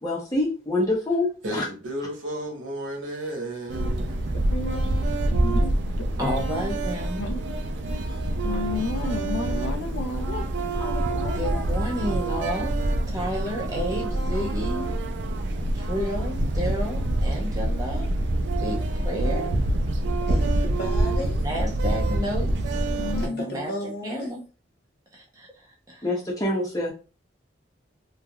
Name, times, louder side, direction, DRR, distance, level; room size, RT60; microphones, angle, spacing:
voice 1, 0.0-1.7 26.0-26.9, left 1 dB, 20° left, 0.8 m, -25 dB
voice 2, 1.4-4.3, right 1 dB, 85° right, 1.0 m, -33 dB
sound 1, 3.7-23.3, right 1 dB, 70° right, 0.4 m, -26 dB
voice 3, 4.3-4.8 5.3-6.1 7.2-7.6 7.9-8.1 8.4-10.4 10.8-11.7 23.0-23.5, left 3 dB, 85° left, 0.5 m, -33 dB
voice 4, 6.2-7.2 11.2-12.8 13.1-14.9 15.7-18.1 18.6-19.5 21.4-22.8 23.2-24.4 25.1-25.5 25.9-26.0, equal, 20° right, 0.6 m, -31 dB
voice 5, 20.3-21.4 23.2-24.3, equal, 50° left, 0.9 m, -34 dB
3.2 x 2.4 x 2.2 m
head